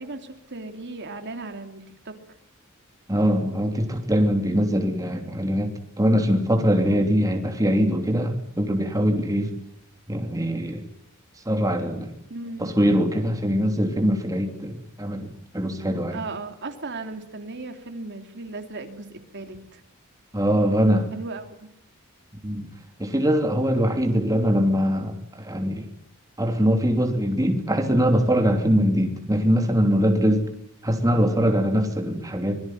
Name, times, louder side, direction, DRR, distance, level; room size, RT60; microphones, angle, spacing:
voice 1, 0.0-2.2 12.3-12.7 16.1-19.1 19.3-19.8 21.1-21.7, right 3 dB, 55° right, 6 dB, 3.0 m, -36 dB
voice 2, 3.1-9.5 10.1-10.8 11.5-12.1 12.6-16.2 20.3-21.1 22.4-22.7 23.0-25.9 26.4-30.4 30.8-32.6, equal, 15° right, 4 dB, 3.1 m, -22 dB
25.5 x 22.5 x 9.3 m, 0.73 s
head